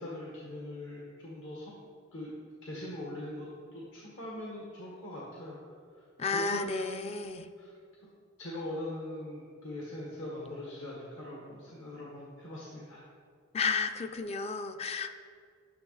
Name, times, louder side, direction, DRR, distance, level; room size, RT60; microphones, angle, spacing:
voice 1, 0.0-1.7 2.1-2.3 2.6-5.6 6.3-6.9 7.6-7.7 8.4-13.0, left 1 dB, 70° left, -4 dB, 1.4 m, -41 dB
voice 2, 6.2-7.5 13.5-15.1, left 5 dB, 30° left, 8 dB, 0.4 m, -32 dB
10.5 x 6.4 x 4.0 m, 2.2 s
head